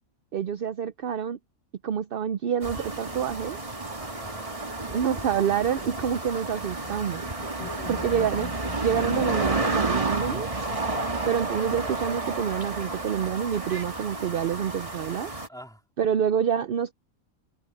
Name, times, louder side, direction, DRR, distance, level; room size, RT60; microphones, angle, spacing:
voice 1, 0.3-1.4 1.8-3.6 4.9-7.2 7.9-8.5 8.8-10.5 11.3-15.3 16.0-16.9, right 8 dB, 60° right, 0.6 m, -27 dB
sound 1, 2.6-15.5, right 3 dB, 25° right, 1.9 m, -31 dB
voice 2, 4.0-4.9 7.4-7.9 11.1-11.4 15.5-15.8, equal, ahead, 3.4 m, -46 dB
sound 2, 6.8-10.2, left 4 dB, 30° left, 0.6 m, -43 dB
omnidirectional pair, 1.5 m